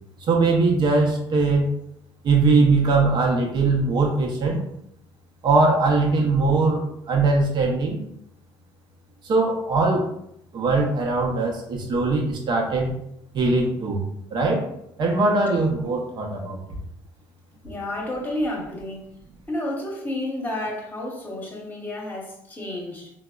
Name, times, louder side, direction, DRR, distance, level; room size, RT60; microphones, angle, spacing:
voice 1, 0.2-1.7 2.2-4.6 5.4-8.0 9.2-10.1 10.5-13.0 13.3-14.0 14.3-14.6 15.0-16.6, right 3 dB, 55° right, 0 dB, 0.7 m, -21 dB
voice 2, 17.6-19.1 19.5-23.1, left 1 dB, 20° left, -1 dB, 0.9 m, -30 dB
3.3 x 2.0 x 2.3 m, 0.77 s
supercardioid pair, 80°, 9 cm